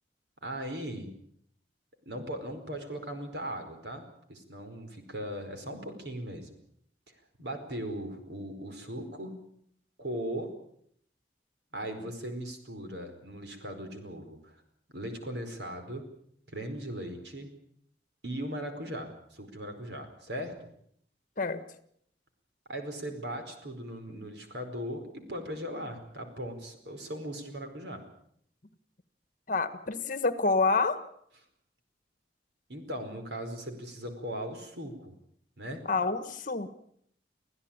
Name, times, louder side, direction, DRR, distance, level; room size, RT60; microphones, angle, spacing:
voice 1, 0.4-1.1 2.0-4.0 4.3-6.6 7.4-9.4 10.0-10.5 11.7-14.6 14.9-16.0 16.5-17.5 18.2-20.5 22.7-28.0 32.7-35.1 35.6-35.8, equal, 70° right, 7 dB, 4.8 m, -38 dB
voice 2, 29.5-31.1 35.9-36.7, left 3 dB, 45° left, 12 dB, 1.6 m, -28 dB
25.5 x 15.5 x 8.9 m, 0.69 s
head